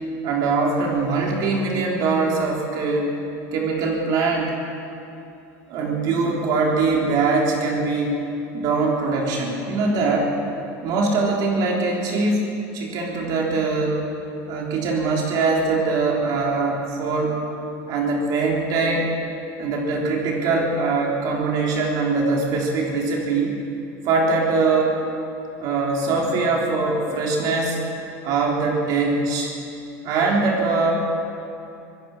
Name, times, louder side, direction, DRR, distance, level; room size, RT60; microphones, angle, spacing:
voice 1, 0.2-3.1 3.5-4.6 5.7-8.2 8.5-10.3 10.8-12.4 12.7-14.0 14.5-17.4 17.9-19.1 19.6-23.6 24.0-25.0 25.6-27.8 28.2-29.5 30.0-30.9, right 3 dB, 55° right, -1 dB, 3.6 m, -22 dB
24.0 x 17.5 x 6.2 m, 2.7 s
supercardioid pair, 135°, 8 cm